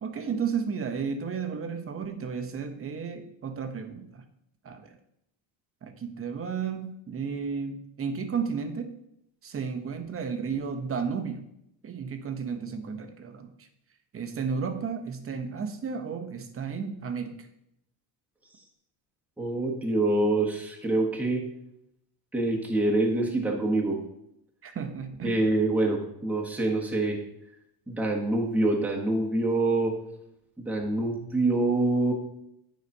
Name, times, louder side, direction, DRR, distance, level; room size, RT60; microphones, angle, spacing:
voice 1, 0.0-4.2 4.6-4.9 5.8-8.9 9.4-11.4 11.8-13.5 14.1-17.4 24.6-25.4, right 6 dB, 30° right, 7 dB, 0.9 m, -33 dB
voice 2, 19.4-21.4 22.3-24.0 25.2-27.2 27.9-29.9 30.6-32.1, right 2 dB, 5° right, -1 dB, 1.2 m, -25 dB
9.6 x 4.1 x 5.3 m, 0.77 s
cardioid pair, 135°, 45 cm